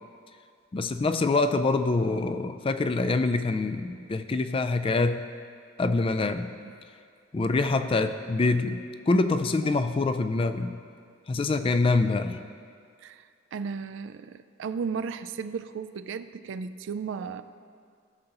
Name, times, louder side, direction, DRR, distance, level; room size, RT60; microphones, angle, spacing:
voice 1, 0.7-5.2 5.8-6.5 7.3-8.8 9.1-10.7 11.3-12.4, left 3 dB, 25° left, 9 dB, 0.3 m, -25 dB
voice 2, 13.0-17.4, right 5 dB, 60° right, 12 dB, 0.3 m, -35 dB
17.0 x 6.6 x 2.9 m, 2.2 s
head